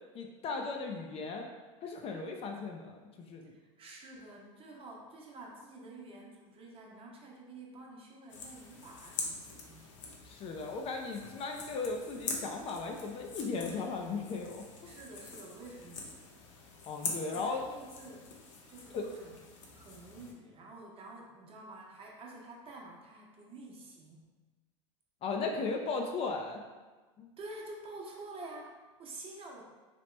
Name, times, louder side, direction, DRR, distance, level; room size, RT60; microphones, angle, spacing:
voice 1, 0.1-1.5 1.8-3.5 10.2-14.6 16.9-17.7 18.9-19.1 25.2-26.6 27.2-27.3, left 4 dB, 35° left, 2 dB, 0.4 m, -36 dB
voice 2, 3.5-10.0 13.6-13.9 14.9-16.4 17.3-18.3 18.7-19.4 19.8-24.2 27.4-29.6, right 2 dB, 35° right, -1 dB, 0.9 m, -49 dB
sound 1, 8.3-20.3, left 4 dB, 80° left, 0.7 m, -44 dB
2.9 x 2.9 x 3.2 m, 1.3 s
hypercardioid pair, 90°, 16 cm